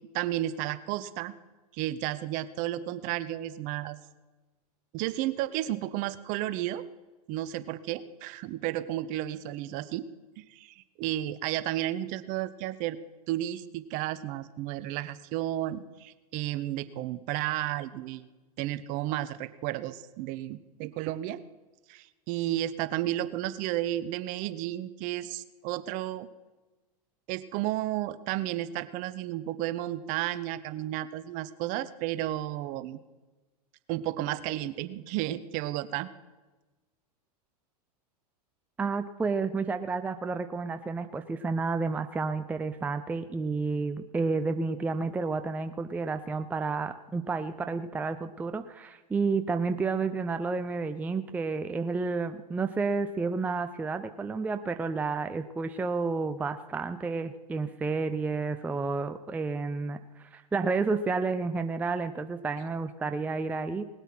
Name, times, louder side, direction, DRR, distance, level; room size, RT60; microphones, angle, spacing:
voice 1, 0.1-1.3 1.7-4.0 4.9-6.8 7.3-10.1 10.4-13.0 13.3-18.3 18.6-21.4 21.9-26.3 27.3-33.0 33.9-36.1, right 14 dB, 40° right, 14 dB, 0.8 m, -32 dB
voice 2, 38.8-63.8, right 4 dB, 10° right, 9 dB, 0.5 m, -31 dB
19.5 x 8.0 x 6.0 m, 1.2 s
hypercardioid pair, 120°, 20 cm